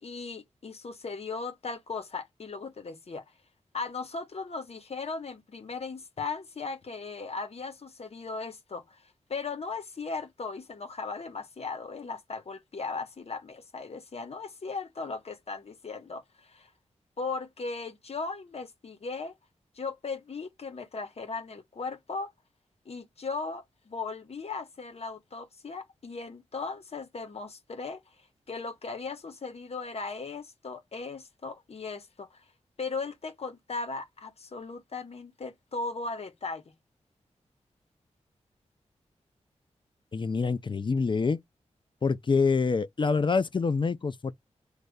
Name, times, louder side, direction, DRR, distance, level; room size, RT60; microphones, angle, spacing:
voice 1, 0.0-3.2 3.7-9.0 9.3-16.7 17.2-19.3 19.7-22.3 22.8-28.0 28.5-32.4 32.8-36.6, left 4 dB, 60° left, 1.2 m, -37 dB
voice 2, 40.1-41.4 42.0-44.3, left 4 dB, 40° left, 0.5 m, -26 dB
6.4 x 3.2 x 2.3 m
cardioid pair, 70°, 12 cm